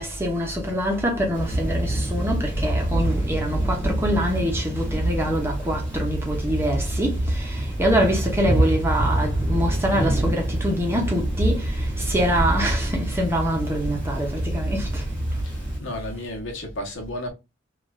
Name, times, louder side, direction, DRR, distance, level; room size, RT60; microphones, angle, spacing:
voice 1, 0.0-15.0, equal, 10° right, 0.7 m, -25 dB
Thunder / Rain, 1.3-15.8, right 1 dB, 5° left, 1.1 m, -26 dB
voice 2, 15.4-17.3, left 1 dB, 70° left, 0.9 m, -33 dB
3.0 x 2.4 x 2.3 m
head